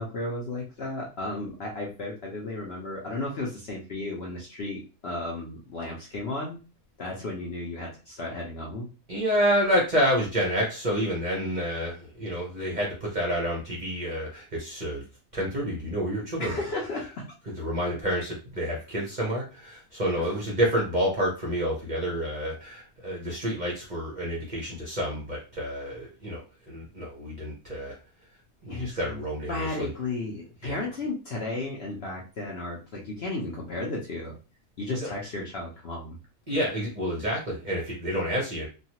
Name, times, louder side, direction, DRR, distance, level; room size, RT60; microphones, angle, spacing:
voice 1, 0.0-6.6 7.0-8.9 16.4-17.3 20.2-20.3 28.7-29.2 29.5-34.4 34.8-36.2, left 2 dB, 55° left, -2 dB, 0.7 m, -34 dB
voice 2, 9.1-15.0 15.3-16.6 17.5-28.0 28.6-29.9 30.6-30.8 35.0-35.1 36.5-38.7, equal, 40° right, -3 dB, 0.7 m, -29 dB
3.1 x 2.3 x 2.8 m, 0.32 s
omnidirectional pair, 1.6 m